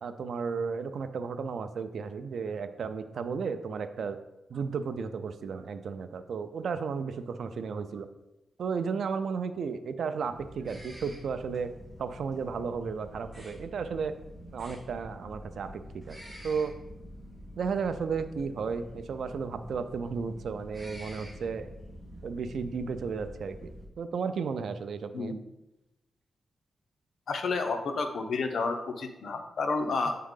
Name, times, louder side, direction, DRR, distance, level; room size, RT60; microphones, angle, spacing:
voice 1, 0.0-4.2 4.5-8.1 8.6-11.7 12.0-14.1 14.5-15.8 16.1-16.2 16.4-16.7 17.6-21.7 22.2-25.4, right 5 dB, 70° right, 10 dB, 0.4 m, -33 dB
sound 1, 10.3-23.9, equal, 5° right, 1.9 m, -47 dB
voice 2, 27.3-30.1, left 4 dB, 65° left, 6 dB, 0.7 m, -30 dB
7.9 x 3.7 x 3.7 m, 0.96 s
wide cardioid pair, 115°, 0 cm